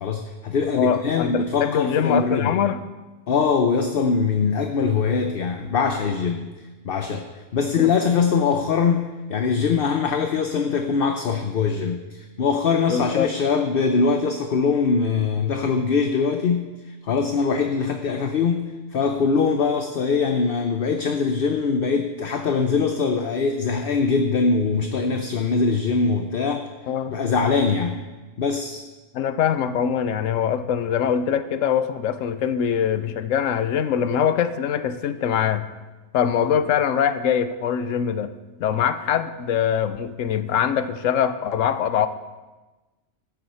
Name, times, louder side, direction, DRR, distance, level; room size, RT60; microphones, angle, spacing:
voice 1, 0.0-2.6 3.3-6.5 6.8-7.2 7.5-16.7 17.0-26.6 27.1-28.0 28.4-28.8, left 5 dB, 50° left, 5 dB, 0.8 m, -22 dB
voice 2, 0.7-2.8 7.8-7.9 12.9-13.3 26.9-27.1 29.1-35.7 36.1-38.3 38.6-42.1, left 8 dB, 80° left, 12 dB, 1.0 m, -23 dB
14.0 x 9.5 x 4.3 m, 1.2 s
omnidirectional pair, 1.3 m